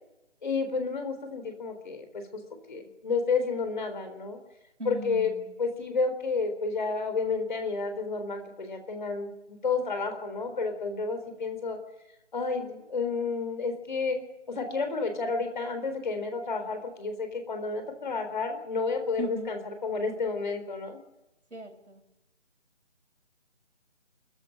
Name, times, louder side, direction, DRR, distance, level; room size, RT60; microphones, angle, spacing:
voice 1, 0.4-2.4 2.7-4.4 4.8-5.3 5.6-11.8 12.3-14.2 14.5-21.0, left 4 dB, 40° left, 7 dB, 4.0 m, -31 dB
voice 2, 4.8-5.5 19.2-19.5 21.5-22.0, right 1 dB, 75° right, 3 dB, 6.6 m, -38 dB
24.5 x 14.5 x 9.0 m, 0.96 s
figure-of-eight pair, 155°, 36 cm